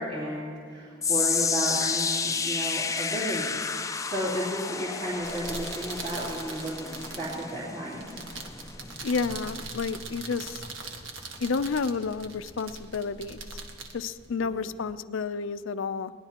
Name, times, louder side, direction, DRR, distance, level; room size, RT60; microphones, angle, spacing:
voice 1, 0.0-6.7 7.2-8.1 14.7-14.8, right 1 dB, 40° right, -9 dB, 3.0 m, -33 dB
sound 1, 1.0-13.3 13.6-14.0 14.6-14.7, left 5 dB, 15° left, 0.4 m, -32 dB
sound 2, 5.1-14.9, right 3 dB, 85° right, 1.4 m, -41 dB
voice 2, 9.0-10.6 11.4-13.4 13.9-16.1, left 4 dB, 85° left, 12 dB, 0.5 m, -30 dB
21.5 x 18.5 x 2.9 m, 2.4 s
head